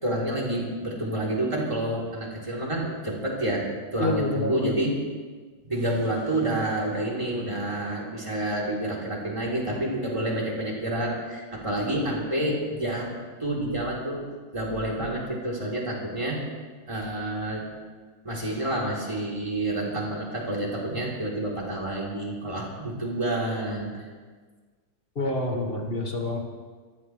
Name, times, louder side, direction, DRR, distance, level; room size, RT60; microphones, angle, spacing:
voice 1, 0.0-3.7 3.9-4.9 5.6-13.1 13.4-14.3 14.5-16.4 16.9-17.7 18.2-24.0, right 1 dB, 15° right, -4 dB, 3.6 m, -28 dB
voice 2, 4.0-4.6 25.2-26.4, left 2 dB, 30° left, 0 dB, 2.1 m, -27 dB
26.0 x 14.5 x 3.3 m, 1.5 s
omnidirectional pair, 1.9 m